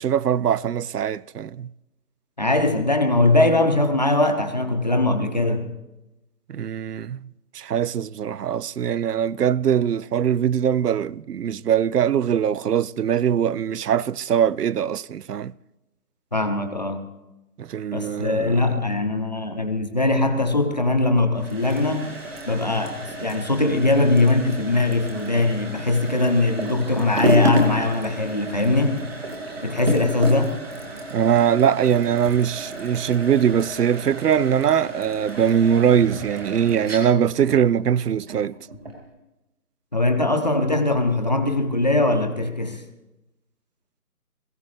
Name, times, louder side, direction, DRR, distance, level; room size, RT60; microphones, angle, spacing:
voice 1, 0.0-1.7 6.5-7.3 7.5-15.5 17.6-18.8 29.8-30.0 31.1-38.6, right 8 dB, 90° right, 0.5 m, -22 dB
voice 2, 2.4-5.7 16.3-17.0 17.9-22.1 22.5-29.1 29.6-30.5 39.9-42.8, left 2 dB, 30° left, 0.9 m, -21 dB
sound 1, 21.3-39.1, right 1 dB, 40° right, 2.3 m, -31 dB
22.0 x 15.5 x 3.2 m
figure-of-eight pair, 165°, 45 cm